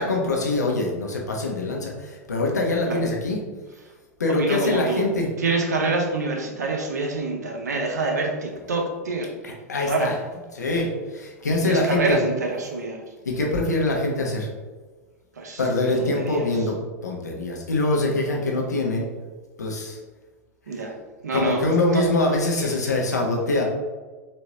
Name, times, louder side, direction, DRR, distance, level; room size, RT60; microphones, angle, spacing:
voice 1, 0.0-3.4 4.2-5.3 9.4-10.2 10.5-12.2 13.2-14.5 15.6-16.8 17.0-19.1 19.6-20.0 21.3-23.6, left 2 dB, 80° left, -1 dB, 1.0 m, -24 dB
voice 2, 4.3-5.0 5.4-9.3 9.8-10.1 11.6-13.0 15.4-16.5 20.7-20.9 21.2-21.6 21.9-22.0, right 3 dB, 75° right, 2 dB, 0.9 m, -26 dB
4.3 x 2.9 x 3.6 m, 1.3 s
figure-of-eight pair, 95°, 9 cm